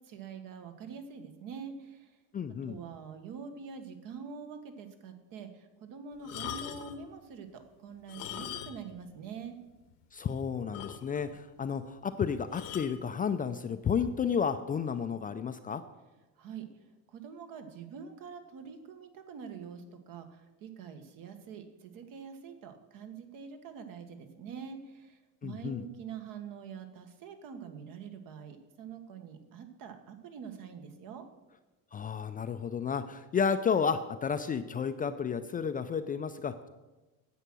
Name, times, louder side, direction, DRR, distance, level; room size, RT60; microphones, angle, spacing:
voice 1, 0.0-2.2 2.7-9.5 16.4-31.3, right 6 dB, 60° right, 7 dB, 1.5 m, -45 dB
voice 2, 2.3-2.8 10.1-15.8 25.4-25.8 31.9-36.7, left 6 dB, 25° left, 9 dB, 0.4 m, -32 dB
sound 1, 6.2-7.0 8.0-9.0 9.3-9.4 9.9-10.0 10.3-10.4 10.7-11.4 12.5-13.0 13.8-14.1, left 11 dB, 75° left, 1.1 m, -42 dB
9.9 x 7.5 x 6.1 m, 1.1 s
supercardioid pair, 115°, 38 cm